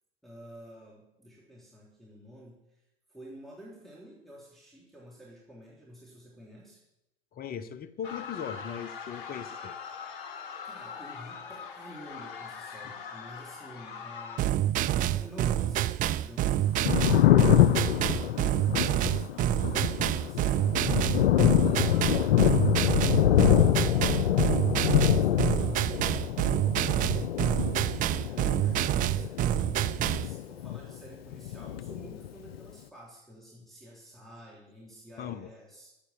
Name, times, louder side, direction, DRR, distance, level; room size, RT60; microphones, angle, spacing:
voice 1, 0.2-2.8 3.1-6.8 10.6-21.4 21.6-29.5 29.9-35.9, equal, ahead, -6 dB, 3.3 m, -50 dB
voice 2, 7.3-9.8 35.2-35.5, left 8 dB, 30° left, 14 dB, 1.0 m, -38 dB
sound 1, 8.0-14.4, left 6 dB, 60° left, 1.6 m, -42 dB
sound 2, 14.4-30.3, right 12 dB, 30° right, 0.4 m, -27 dB
Thunder, 16.6-31.1 31.3-32.6, left 12 dB, 80° left, 0.5 m, -25 dB
12.5 x 8.3 x 7.6 m, 0.92 s
hypercardioid pair, 90°, 30 cm